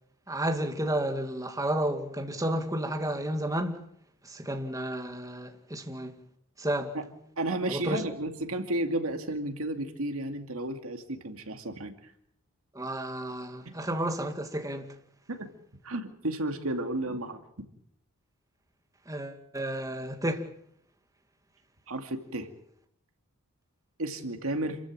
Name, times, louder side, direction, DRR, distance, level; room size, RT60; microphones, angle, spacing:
voice 1, 0.3-3.8 4.2-6.2 6.6-7.0 7.7-8.0 12.7-15.0 19.1-20.5, right 1 dB, 15° right, 2.3 m, -32 dB
voice 2, 7.4-12.1 13.6-13.7 15.3-15.5 15.8-17.4 21.9-22.5 24.0-24.8, right 1 dB, 65° right, 2.6 m, -32 dB
28.0 x 15.0 x 8.9 m
head